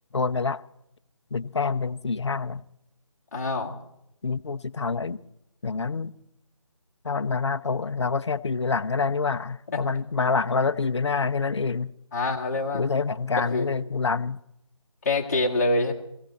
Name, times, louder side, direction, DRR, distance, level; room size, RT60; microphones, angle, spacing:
voice 1, 0.1-0.6 1.3-2.6 4.2-5.2 5.6-6.1 7.0-11.9 12.7-14.4, left 4 dB, 55° left, 0.5 m, -26 dB
voice 2, 3.3-3.7 9.7-9.8 12.1-12.8 13.4-13.7 15.0-15.9, left 2 dB, 30° left, 1.9 m, -25 dB
17.5 x 16.0 x 4.1 m
figure-of-eight pair, 160°, 17 cm